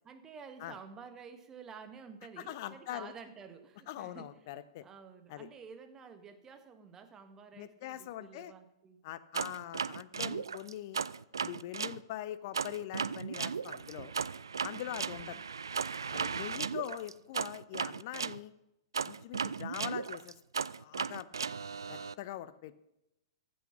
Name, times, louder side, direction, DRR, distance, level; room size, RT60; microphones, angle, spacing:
voice 1, 0.0-4.3 4.8-9.0 14.9-15.0 15.3-15.4, right 6 dB, 20° right, 8 dB, 1.3 m, -51 dB
voice 2, 2.4-3.1 3.9-4.9 5.3-5.5 7.6-8.5 9.0-11.0 11.4-14.1 14.6-15.4 16.1-18.5 19.0-20.3 20.8-21.3 21.9-22.8, left 13 dB, 50° left, 14 dB, 0.6 m, -42 dB
sound 1, 9.3-12.0 12.5-18.4 18.9-22.1, right 5 dB, 75° right, 0.3 m, -36 dB
15.0 x 6.4 x 5.8 m, 0.86 s
figure-of-eight pair, 105°, 2 cm